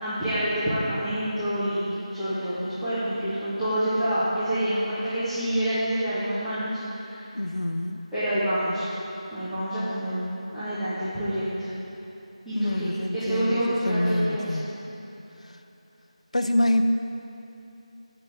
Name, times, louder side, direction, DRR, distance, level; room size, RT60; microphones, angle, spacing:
voice 1, 0.0-7.3 8.1-8.9 9.3-10.2 10.5-11.7 12.4-14.6, right 1 dB, ahead, -21 dB, 1.7 m, -27 dB
voice 2, 7.3-8.0 12.5-14.8 16.3-16.8, left 1 dB, 65° left, 6 dB, 0.8 m, -26 dB
18.0 x 6.9 x 3.7 m, 3.0 s
figure-of-eight pair, 165°, 4 cm